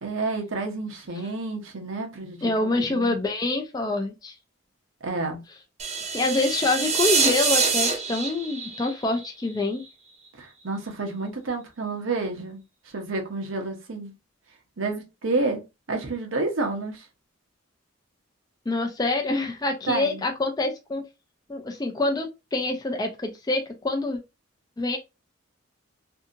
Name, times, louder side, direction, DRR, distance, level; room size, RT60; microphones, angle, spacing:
voice 1, 0.0-3.2 5.0-5.4 10.4-12.6 12.9-14.1 14.8-17.1 19.9-20.2, right 3 dB, 80° right, 0.9 m, -30 dB
voice 2, 2.4-4.3 6.1-9.8 18.7-21.0 21.5-24.2 24.8-25.0, left 2 dB, 20° left, 0.4 m, -26 dB
sound 1, 5.8-9.9, right 5 dB, 35° right, 0.6 m, -25 dB
2.7 x 2.6 x 2.4 m
head